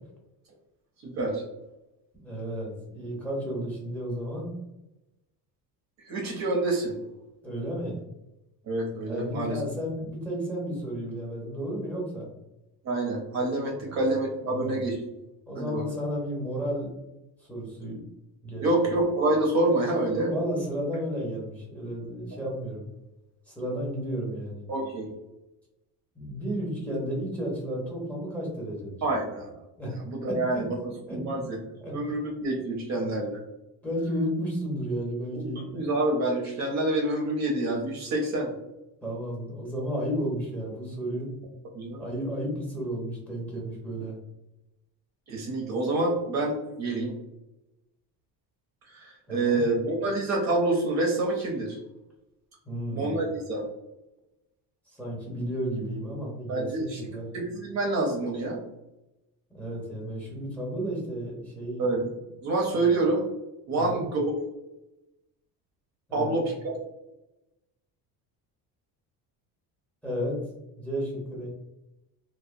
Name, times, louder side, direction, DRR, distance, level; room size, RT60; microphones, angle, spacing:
voice 1, 1.0-1.4 6.1-6.9 8.7-9.6 12.8-15.0 15.6-15.8 18.6-20.3 24.7-25.1 29.0-29.5 30.1-30.7 31.1-31.6 31.9-33.4 35.3-35.5 35.7-38.5 41.7-42.0 45.3-47.1 48.9-51.8 52.9-53.6 56.5-58.6 61.8-62.0 62.4-63.2 63.7-64.4 66.1-66.8, right 2 dB, 45° right, 0 dB, 0.5 m, -27 dB
voice 2, 2.2-4.5 7.4-8.0 9.0-12.3 13.8-14.0 14.5-14.8 15.5-16.9 17.4-18.0 18.4-18.8 20.1-22.9 23.5-24.6 26.1-29.0 29.8-30.0 30.3-30.6 31.1-31.2 31.8-31.9 33.8-35.7 39.0-41.3 42.0-44.1 49.3-49.7 52.6-53.2 54.9-57.3 59.5-61.9 62.7-62.9 63.7-64.1 66.1-66.4 70.0-70.4 70.8-71.5, equal, 5° left, -3 dB, 0.6 m, -33 dB
2.7 x 2.1 x 2.4 m, 0.96 s
cardioid pair, 150°, 40 cm